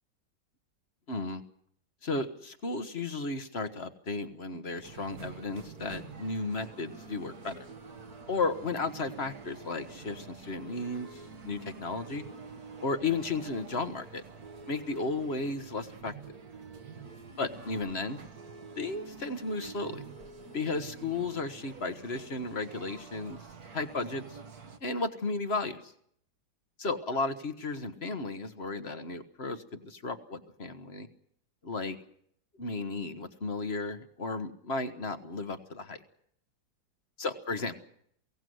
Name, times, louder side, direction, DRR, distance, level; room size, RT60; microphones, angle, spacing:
voice 1, 1.1-1.4 2.0-7.7 8.3-12.2 12.8-14.2 14.7-16.1 17.4-18.2 18.7-20.0 20.5-23.4 23.7-24.4 24.8-25.9 26.8-31.1 31.6-32.0 32.6-36.0 37.2-37.7, left 3 dB, 40° left, 10 dB, 1.3 m, -34 dB
sound 1, 4.8-24.8, right 5 dB, 55° right, 1.7 m, -47 dB
23.0 x 17.5 x 7.8 m, 0.68 s
omnidirectional pair, 2.1 m